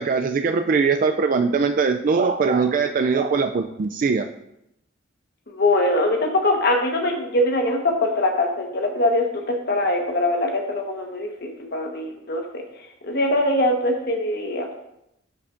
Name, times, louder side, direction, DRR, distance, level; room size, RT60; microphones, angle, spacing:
voice 1, 0.0-4.3, right 5 dB, 45° right, 6 dB, 0.3 m, -21 dB
voice 2, 5.5-12.6 13.0-14.7, left 1 dB, 55° left, 2 dB, 1.3 m, -22 dB
11.5 x 5.9 x 2.6 m, 0.81 s
head